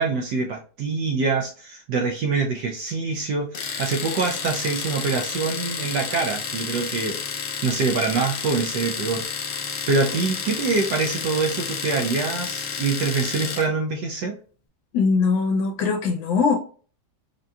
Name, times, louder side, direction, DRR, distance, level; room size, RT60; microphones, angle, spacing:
voice 1, 0.0-7.2 7.6-9.2 9.9-14.4, right 4 dB, 70° right, 1.0 m, -25 dB
Domestic sounds home sounds, 3.5-13.7, left 6 dB, 85° left, 0.6 m, -31 dB
voice 2, 14.9-16.6, left 5 dB, 70° left, 1.2 m, -21 dB
5.0 x 2.9 x 2.2 m
omnidirectional pair, 2.3 m